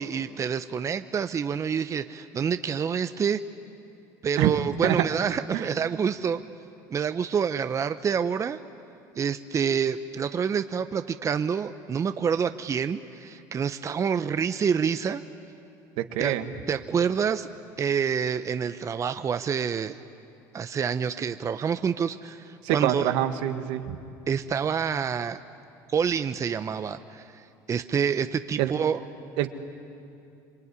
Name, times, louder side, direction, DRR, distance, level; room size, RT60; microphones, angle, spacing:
voice 1, 0.0-3.4 4.2-6.4 6.9-8.6 9.1-15.2 16.2-16.3 16.7-17.5 17.8-20.0 20.5-23.1 24.3-25.4 25.9-29.0, right 7 dB, 35° right, 10 dB, 0.9 m, -27 dB
voice 2, 16.1-16.4 22.6-24.0 28.6-28.7 29.4-29.5, right 12 dB, 75° right, 8 dB, 1.7 m, -25 dB
26.0 x 23.5 x 9.7 m, 2.6 s
supercardioid pair, 85°, 9 cm